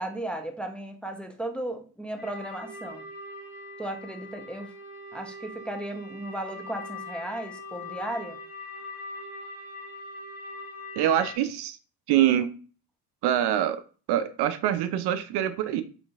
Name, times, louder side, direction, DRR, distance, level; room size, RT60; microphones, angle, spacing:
voice 1, 0.0-3.1 3.8-4.7 5.1-8.4, right 1 dB, ahead, 0.6 m, -35 dB
sound 1, 2.2-11.4, left 2 dB, 75° left, 1.5 m, -41 dB
voice 2, 11.0-11.8 12.1-12.5 13.2-13.8 14.1-15.8, right 11 dB, 60° right, 0.5 m, -24 dB
3.8 x 3.3 x 2.4 m
hypercardioid pair, 60°, 45 cm